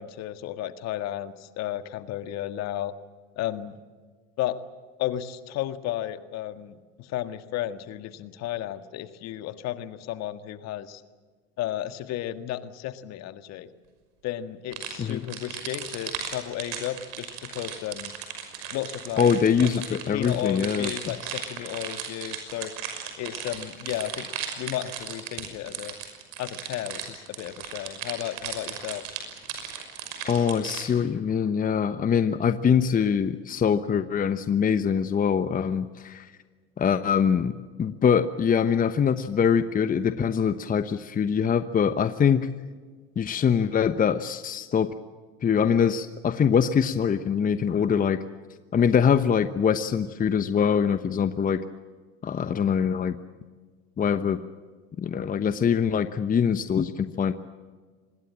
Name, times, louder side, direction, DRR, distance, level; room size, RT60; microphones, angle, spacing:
voice 1, 0.0-2.9 3.4-3.8 4.4-4.6 5.0-11.0 11.6-13.7 14.2-18.1 18.7-19.3 19.6-22.7 23.2-24.3 24.6-26.0 26.4-29.0, left 12 dB, 50° left, 11 dB, 1.8 m, -33 dB
sound 1, 14.7-30.9, right 9 dB, 65° right, 5.9 m, -36 dB
voice 2, 19.2-20.9 30.2-36.3 36.8-37.5 37.8-42.5 43.2-44.9 45.4-48.2 48.7-51.6 52.2-53.1 54.0-54.4 55.0-57.3, left 7 dB, 25° left, 11 dB, 1.1 m, -23 dB
25.5 x 21.0 x 7.5 m, 1.5 s
hypercardioid pair, 85°, 33 cm